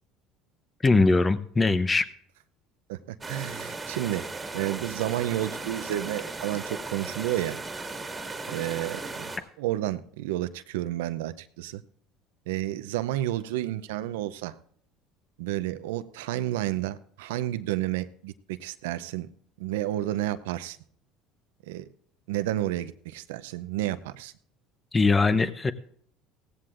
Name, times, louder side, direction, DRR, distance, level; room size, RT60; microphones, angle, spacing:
voice 1, 0.8-2.1 24.9-25.7, left 3 dB, 20° left, 0.7 m, -21 dB
voice 2, 2.9-4.2 4.5-7.6 8.5-9.3 9.6-11.8 12.5-14.5 15.4-19.3 19.6-20.8 21.7-21.9 22.3-24.3, right 14 dB, 85° right, 0.5 m, -31 dB
sound 1, 3.2-9.4, right 3 dB, 20° right, 1.8 m, -37 dB
17.5 x 15.0 x 2.5 m
supercardioid pair, 95°, 0 cm